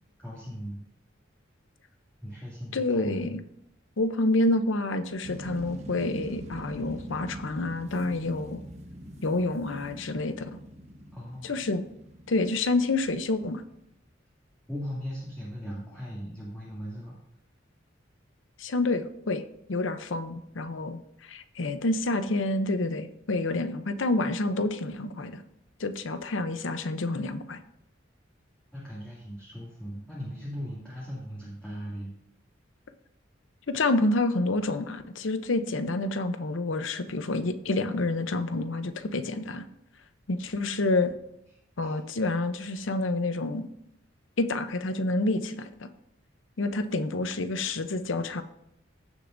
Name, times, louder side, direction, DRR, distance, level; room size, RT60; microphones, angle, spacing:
voice 1, 0.2-0.8 2.2-3.4 11.1-11.6 14.7-17.2 28.7-32.1 41.8-42.0, equal, 5° left, -8 dB, 2.4 m, -38 dB
voice 2, 2.7-3.4 4.0-8.6 9.2-10.6 11.4-11.8 12.3-13.6 18.6-19.4 19.7-25.4 25.8-27.6 33.7-39.6 40.3-41.1 41.8-43.7 44.4-45.9 46.6-48.4, left 2 dB, 75° left, 10 dB, 0.7 m, -28 dB
sound 1, 5.2-13.9, equal, 35° right, 1.0 m, -44 dB
15.5 x 6.8 x 2.6 m, 0.79 s
head